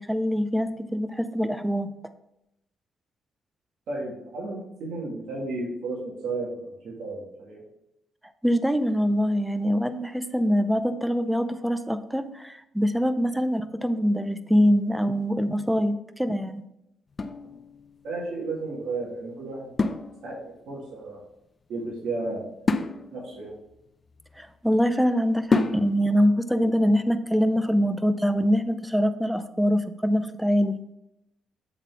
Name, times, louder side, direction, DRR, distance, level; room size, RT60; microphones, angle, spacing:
voice 1, 0.0-1.9 8.4-16.7 24.4-30.8, equal, 5° right, 11 dB, 0.6 m, -24 dB
voice 2, 3.9-7.6 18.0-19.7 20.2-21.2 21.7-22.5 23.1-23.5, right 3 dB, 70° right, -4 dB, 2.1 m, -33 dB
sound 1, 17.1-18.1 19.8-20.7 22.7-24.7 25.5-26.2, left 3 dB, 35° left, 0.5 m, -29 dB
8.4 x 4.0 x 4.6 m, 0.84 s
cardioid pair, 90°, 0 cm